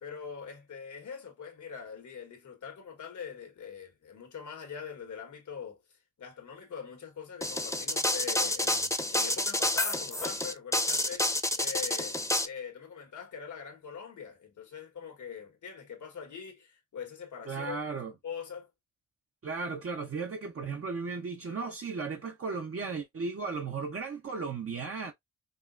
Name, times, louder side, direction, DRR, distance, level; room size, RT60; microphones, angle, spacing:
voice 1, 0.0-5.8 6.2-17.8 18.2-18.7, left 7 dB, 85° left, 1.4 m, -43 dB
sound 1, 7.4-12.5, left 1 dB, 10° left, 0.7 m, -29 dB
voice 2, 17.5-18.1 19.4-25.1, right 4 dB, 50° right, 0.7 m, -35 dB
5.3 x 2.3 x 2.5 m
cardioid pair, 70°, 29 cm